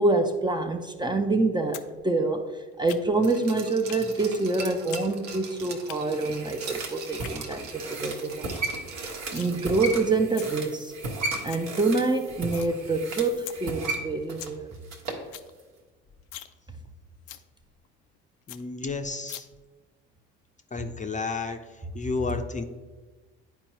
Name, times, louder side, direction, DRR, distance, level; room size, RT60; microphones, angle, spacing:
voice 1, 0.0-8.6 9.0-10.9 11.4-14.7, right 3 dB, 15° right, 5 dB, 0.6 m, -26 dB
sound 1, 1.7-1.9 2.2-3.3 3.9-4.0 4.4-5.1 5.3-6.0 7.0-7.3 7.8-7.9 8.2-8.3 8.5-8.7 9.0-9.5 10.1-10.5 11.0-11.1 11.2-11.6 12.0-12.7 13.1-13.2 13.5-13.6 14.0-14.1 14.2-14.6 14.9-15.0 15.2-15.5 15.8-15.9 16.2-16.5 16.8-16.9 17.3-17.4 17.8-17.9 18.2-18.3 18.5-18.6 19.3-19.4, left 13 dB, 70° left, 0.5 m, -41 dB
Glass, 3.2-10.2 10.5-10.6, right 4 dB, 80° right, 1.0 m, -42 dB
sound 2, 5.9-15.3 15.6-15.7, right 2 dB, 55° right, 1.3 m, -35 dB
voice 2, 18.5-19.5 20.7-21.6 21.9-22.6, left 4 dB, 25° left, 6 dB, 0.6 m, -31 dB
10.5 x 4.4 x 3.0 m, 1.3 s
hypercardioid pair, 60°, 32 cm